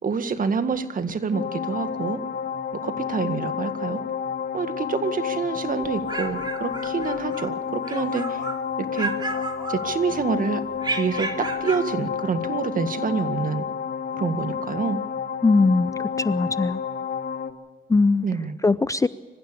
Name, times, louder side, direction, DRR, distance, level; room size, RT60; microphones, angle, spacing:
voice 1, 0.0-2.2 2.7-4.0 4.5-8.4 8.8-9.1 9.7-10.6 10.9-13.6 14.1-15.0 18.2-18.6, right 5 dB, 45° right, 9 dB, 1.9 m, -27 dB
sound 1, 1.3-17.5, left 7 dB, 55° left, 2.2 m, -30 dB
sound 2, 5.8-7.5 7.8-8.6 8.9-10.2 10.8-11.9, right 3 dB, 20° right, 2.8 m, -32 dB
voice 2, 15.4-16.8 17.9-18.2 18.6-19.1, left 3 dB, 15° left, 15 dB, 0.6 m, -20 dB
26.0 x 15.5 x 7.0 m, 1.4 s
cardioid pair, 90°, 20 cm